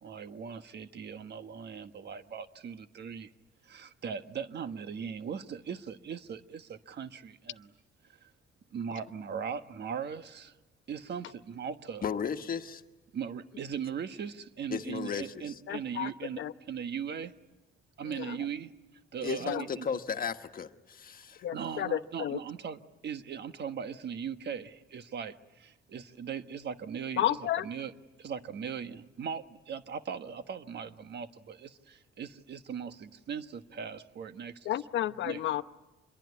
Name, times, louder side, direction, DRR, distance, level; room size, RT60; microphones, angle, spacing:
voice 1, 0.0-3.3 3.6-7.7 8.1-8.3 8.7-10.5 10.9-12.0 13.1-16.4 16.7-17.3 18.0-18.7 19.1-20.0 21.5-27.9 28.2-34.7 35.2-35.4, right 7 dB, 60° right, 1.3 m, -39 dB
voice 2, 12.0-12.8 14.7-15.6 19.2-21.5, left 7 dB, 45° left, 1.4 m, -35 dB
voice 3, 15.7-16.1 16.4-16.5 18.0-18.4 19.4-19.6 21.4-22.4 27.2-27.7 34.6-35.6, left 12 dB, 70° left, 0.9 m, -32 dB
26.0 x 22.5 x 9.6 m
cardioid pair, 90°, 20 cm